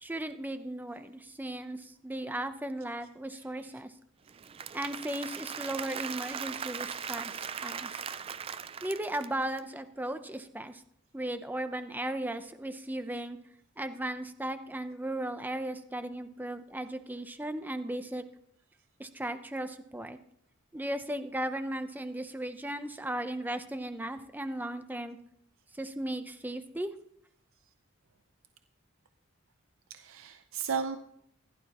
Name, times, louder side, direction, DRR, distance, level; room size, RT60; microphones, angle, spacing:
voice 1, 0.0-3.9 4.7-7.9 8.8-10.7 11.1-13.4 13.8-18.2 19.0-20.2 20.7-25.2 25.8-26.9, right 1 dB, 10° right, 9 dB, 0.7 m, -36 dB
voice 2, 3.3-3.8 6.3-6.4 29.9-31.0, right 6 dB, 75° right, 9 dB, 0.6 m, -36 dB
Applause / Crowd, 4.3-9.6, right 7 dB, 30° right, 0.3 m, -39 dB
15.5 x 11.5 x 3.0 m, 0.70 s
head